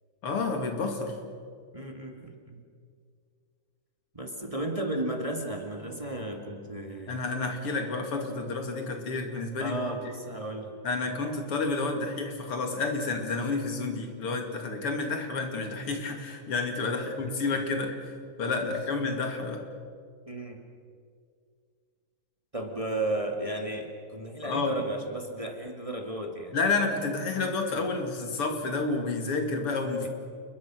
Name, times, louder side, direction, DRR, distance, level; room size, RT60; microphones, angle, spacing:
voice 1, 0.2-1.2 7.1-10.1 10.8-18.1 18.4-19.6 24.4-24.7 26.5-30.1, left 3 dB, 90° left, 4 dB, 3.4 m, -30 dB
voice 2, 1.7-2.6 4.1-7.2 9.6-10.7 17.2-17.3 18.7-18.8 20.3-20.6 22.5-26.6 30.0-30.1, right 1 dB, 15° right, 3 dB, 2.0 m, -34 dB
29.0 x 22.0 x 6.3 m, 2.2 s
omnidirectional pair, 2.4 m